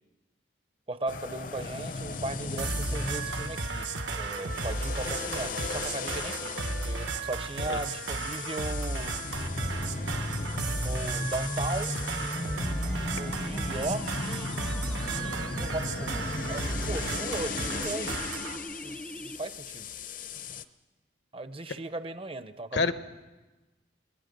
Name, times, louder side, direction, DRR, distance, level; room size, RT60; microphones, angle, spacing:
voice 1, 0.9-6.5 6.8-9.1 10.8-12.0 13.1-14.5 15.1-16.2 16.5-18.2 18.8-19.9 21.3-22.8, right 2 dB, 30° right, 12 dB, 0.7 m, -37 dB
sound 1, 1.1-20.6, left 4 dB, 45° left, 0.8 m, -37 dB
sound 2, 2.6-18.6, right 3 dB, 80° right, 1.5 m, -34 dB
sound 3, 9.4-19.4, equal, 5° left, 0.6 m, -38 dB
voice 2, 18.0-18.4 22.7-22.9, left 4 dB, 70° left, 10 dB, 1.0 m, -29 dB
28.5 x 20.0 x 5.3 m, 1.2 s
head